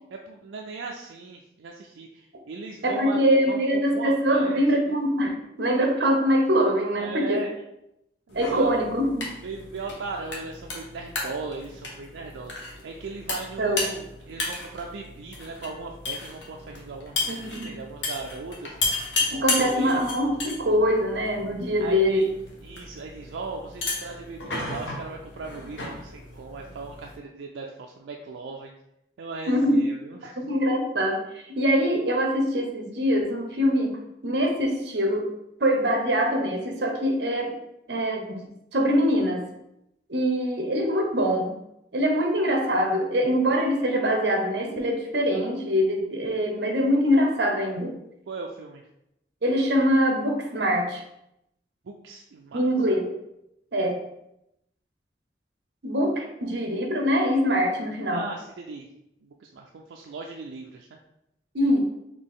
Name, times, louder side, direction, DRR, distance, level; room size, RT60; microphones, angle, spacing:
voice 1, 0.1-3.2 3.5-4.9 7.0-7.5 8.3-8.7 9.4-18.8 19.3-20.0 21.3-21.5 21.8-22.3 22.6-28.7 29.2-30.4 48.3-48.8 51.8-52.7 58.1-58.9 59.2-61.0, right 4 dB, 90° right, 1 dB, 0.4 m, -38 dB
voice 2, 2.8-7.4 8.3-9.2 13.6-13.8 17.3-17.7 19.3-22.2 29.5-29.8 30.4-35.3 35.6-37.6 37.9-38.4 38.7-39.5 40.1-41.5 41.9-48.0 49.4-51.0 52.5-53.1 53.7-54.0 55.8-58.2 61.5-61.8, equal, 65° right, 3 dB, 0.8 m, -23 dB
sound 1, 8.3-27.2, left 3 dB, 90° left, 1.0 m, -34 dB
4.2 x 2.8 x 3.6 m, 0.84 s
head